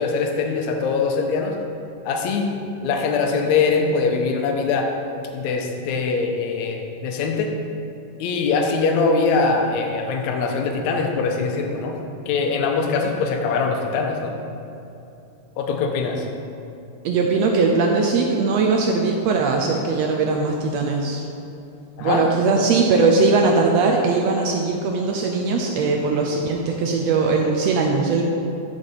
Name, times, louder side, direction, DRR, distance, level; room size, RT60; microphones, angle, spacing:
voice 1, 0.0-1.6 2.1-2.5 2.8-4.9 5.3-7.5 8.2-12.0 12.3-14.3 15.6-16.3 22.0-22.3 22.6-22.7, left 4 dB, 75° left, 3 dB, 2.0 m, -22 dB
voice 2, 17.0-21.3 22.0-28.2, right 4 dB, 80° right, 1 dB, 1.5 m, -20 dB
12.0 x 5.4 x 4.1 m, 2.8 s
omnidirectional pair, 3.5 m